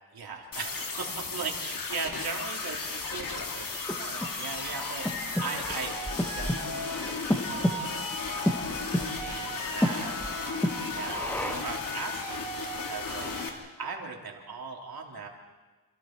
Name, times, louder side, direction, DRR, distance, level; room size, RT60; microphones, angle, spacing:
voice 1, 0.1-8.7 9.2-15.3, right 4 dB, 75° right, 1 dB, 3.5 m, -39 dB
sound 1, 0.5-13.5, left 3 dB, 60° left, 2.7 m, -34 dB
Breathing, 3.3-11.8, equal, 5° left, 1.2 m, -32 dB
29.0 x 27.5 x 4.6 m, 1.3 s
wide cardioid pair, 180°, 37 cm